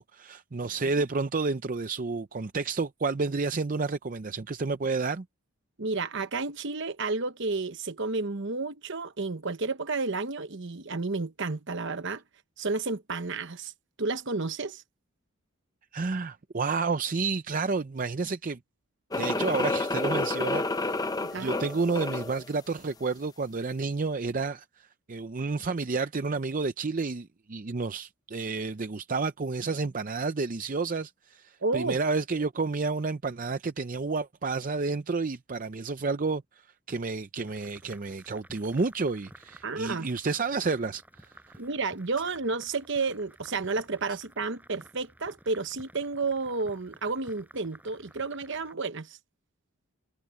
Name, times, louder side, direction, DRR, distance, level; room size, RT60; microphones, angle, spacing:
voice 1, 0.0-5.2 15.9-18.6 19.2-20.9 21.4-36.4 36.9-41.6, right 4 dB, 35° right, 0.5 m, -30 dB
voice 2, 5.8-12.2 12.6-13.7 14.0-14.8 21.2-21.6 31.6-32.0 39.6-40.1 41.6-49.2, right 3 dB, 55° right, 1.0 m, -31 dB
sound 1, 19.1-22.4, left 2 dB, 15° left, 0.7 m, -29 dB
sound 2, 37.5-48.7, right 1 dB, 5° right, 7.0 m, -54 dB
head